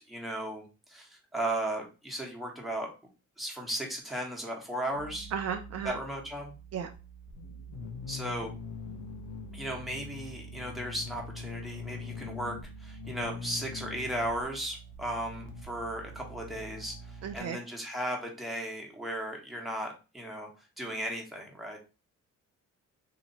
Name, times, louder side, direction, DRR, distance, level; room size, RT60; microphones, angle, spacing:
voice 1, 0.1-2.9 3.4-5.3 5.8-6.5 8.1-8.5 9.5-20.5 20.8-21.8, right 1 dB, ahead, -1 dB, 1.3 m, -36 dB
sound 1, 4.9-17.4, left 2 dB, 90° left, 0.8 m, -43 dB
voice 2, 5.3-6.0 6.7-6.9 17.2-17.6, right 8 dB, 55° right, 7 dB, 0.5 m, -34 dB
2.9 x 2.8 x 4.0 m, 0.32 s
cardioid pair, 90°, 30 cm